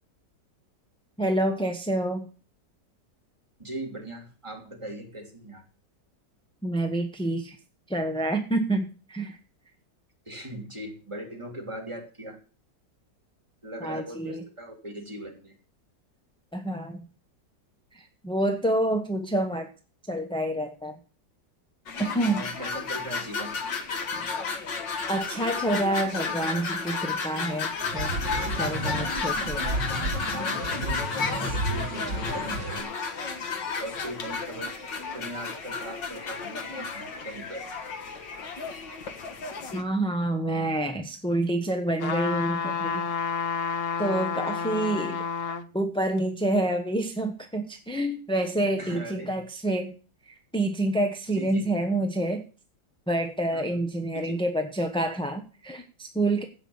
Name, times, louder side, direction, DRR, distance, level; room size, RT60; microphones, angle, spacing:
voice 1, 1.2-2.3 6.6-7.6 7.9-9.4 13.8-14.4 16.5-17.0 17.9-19.7 20.1-21.0 22.0-22.4 25.1-28.1 28.6-29.6 31.4-31.6 39.7-43.1 44.0-45.2 45.7-50.0 50.2-52.4 53.1-56.4, right 1 dB, 5° left, 4 dB, 0.8 m, -28 dB
voice 2, 3.6-5.6 10.2-12.4 13.6-15.6 22.3-23.6 31.5-32.9 33.8-34.7 35.1-37.7 44.6-44.7 48.8-49.4 51.3-51.7 53.5-53.8 54.1-54.3, right 1 dB, 15° right, 0 dB, 3.2 m, -39 dB
sound 1, 21.9-39.8, left 4 dB, 85° left, 2.2 m, -32 dB
sound 2, 27.8-32.8, right 2 dB, 70° right, 3.4 m, -32 dB
sound 3, 42.0-45.7 46.2-46.3, left 6 dB, 45° left, 0.9 m, -30 dB
16.0 x 6.1 x 7.1 m, 0.37 s
omnidirectional pair, 1.9 m